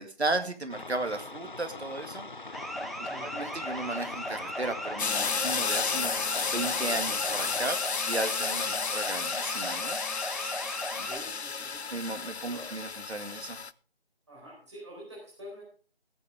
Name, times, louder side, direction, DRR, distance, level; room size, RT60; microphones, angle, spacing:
voice 1, 0.0-2.2 3.0-6.2 6.5-10.0 10.9-11.1 11.9-13.6, right 2 dB, 90° right, 7 dB, 2.3 m, -35 dB
sound 1, 0.7-7.7, left 3 dB, 50° left, 0.6 m, -43 dB
sound 2, 2.5-11.2, equal, ahead, 0.5 m, -37 dB
voice 2, 3.1-3.5 8.6-9.0 11.0-11.8 12.5-12.7 14.3-15.6, equal, 25° right, -5 dB, 4.3 m, -47 dB
sound 3, 5.0-13.7, left 5 dB, 85° left, 0.7 m, -32 dB
18.0 x 8.8 x 3.7 m, 0.42 s
figure-of-eight pair, 180°, 32 cm